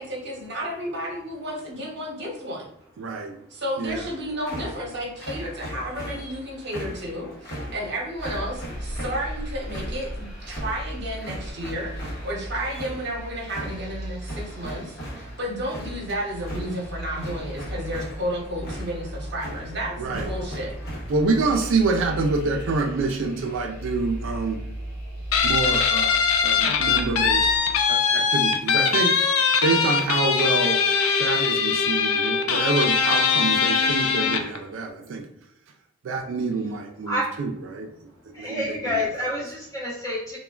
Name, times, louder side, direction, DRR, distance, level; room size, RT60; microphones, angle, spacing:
voice 1, 0.0-2.7 3.5-20.7, equal, 55° right, -2 dB, 0.8 m, -32 dB
voice 2, 3.0-3.3 3.8-4.0 20.0-20.3 21.1-24.6 25.4-27.5 27.9-29.2 29.6-30.8 31.2-35.3 36.0-37.9 38.3-38.6, right 3 dB, 70° right, 2 dB, 0.4 m, -26 dB
sound 1, 3.9-23.5, equal, 50° left, 0.9 m, -39 dB
sound 2, 8.2-27.8, right 1 dB, 30° left, 1.2 m, -37 dB
Guitar, 25.3-34.6, left 6 dB, 85° left, 0.4 m, -21 dB
voice 3, 38.3-40.4, left 1 dB, 15° left, -5 dB, 0.8 m, -28 dB
3.2 x 2.1 x 2.3 m, 0.74 s
head